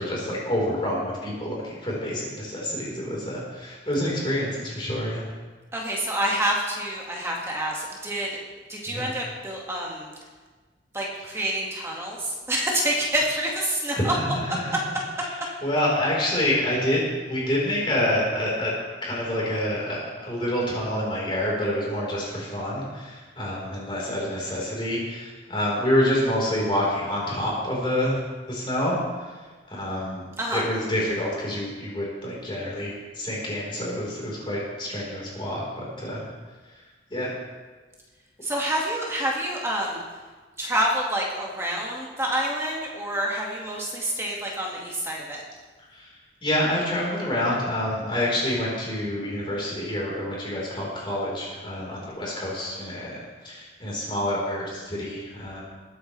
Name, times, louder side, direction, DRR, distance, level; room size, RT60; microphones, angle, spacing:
voice 1, 0.0-5.2 8.9-9.1 13.9-14.3 14.6-14.7 15.4-17.0 17.3-18.7 19.0-28.2 28.5-29.3 29.7-36.2 37.1-37.3 45.9-46.1 46.4-55.6, left 1 dB, 25° left, -5 dB, 4.4 m, -27 dB
voice 2, 5.7-8.3 8.7-10.1 10.9-14.1 30.4-30.6 38.4-40.0 40.6-45.4, right 1 dB, 15° right, -3 dB, 2.0 m, -27 dB
21.0 x 9.3 x 3.4 m, 1.4 s
head